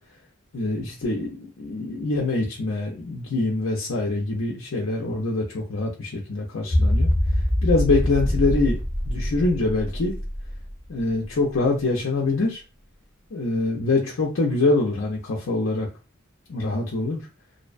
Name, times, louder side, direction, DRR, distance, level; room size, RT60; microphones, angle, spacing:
voice 1, 0.5-7.1 7.6-8.8 9.1-10.2 10.9-12.6 13.3-15.9 16.5-17.3, left 3 dB, 75° left, -2 dB, 0.5 m, -24 dB
sound 1, 6.7-10.8, left 1 dB, 5° right, 0.7 m, -24 dB
2.6 x 2.1 x 2.5 m, 0.31 s
head